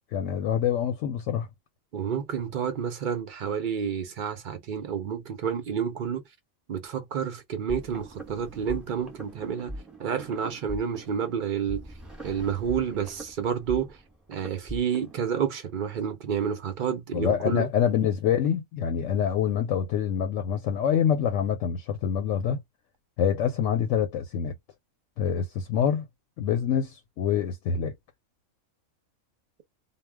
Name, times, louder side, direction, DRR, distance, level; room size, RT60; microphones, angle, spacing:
voice 1, 0.1-1.5 17.1-22.6 23.2-24.5 25.2-26.0 26.4-27.9, left 8 dB, 75° left, 0.9 m, -26 dB
voice 2, 1.9-6.2 6.7-9.7 10.0-11.8 12.2-14.0 14.3-17.7, right 7 dB, 65° right, 0.5 m, -29 dB
sound 1, 7.7-15.3, right 1 dB, ahead, 0.7 m, -41 dB
2.3 x 2.2 x 3.3 m
omnidirectional pair, 1.4 m